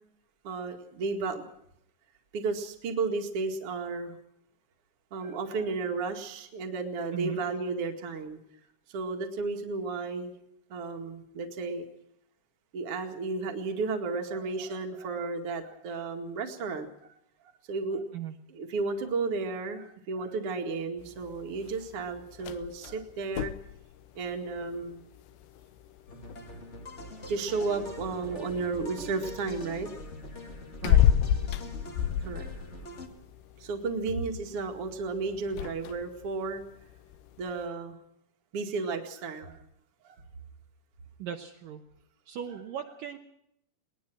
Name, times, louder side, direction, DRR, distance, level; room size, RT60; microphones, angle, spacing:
voice 1, 0.4-1.4 2.3-4.2 5.1-8.4 8.9-10.3 10.7-11.9 12.7-16.9 17.7-18.0 18.5-23.5 24.1-25.0 27.3-29.9 32.2-32.5 33.6-36.6 37.4-38.0 38.5-39.6 40.0-40.2, right 4 dB, 45° right, 4 dB, 2.4 m, -33 dB
sound 1, 21.0-37.7, left 11 dB, 80° left, 3.0 m, -33 dB
sound 2, 26.1-33.1, left 1 dB, 30° left, 1.3 m, -43 dB
voice 2, 30.8-31.1 41.2-41.9 42.3-43.2, right 9 dB, 70° right, 3 dB, 2.4 m, -37 dB
21.5 x 19.5 x 6.2 m, 0.75 s
omnidirectional pair, 4.8 m